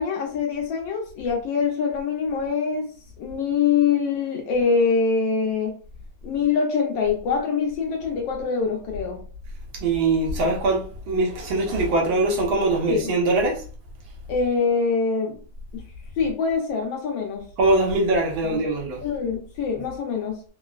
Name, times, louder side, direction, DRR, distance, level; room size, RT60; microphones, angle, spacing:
voice 1, 0.0-2.9 3.2-5.7 6.2-9.2 12.8-13.1 14.3-15.4 15.7-15.8 16.2-17.4 18.4-18.6 19.0-20.4, left 5 dB, 70° left, 1.2 m, -24 dB
voice 2, 9.8-13.6 17.6-19.0, right 2 dB, 75° right, 1.7 m, -22 dB
3.9 x 2.0 x 2.3 m
omnidirectional pair, 2.3 m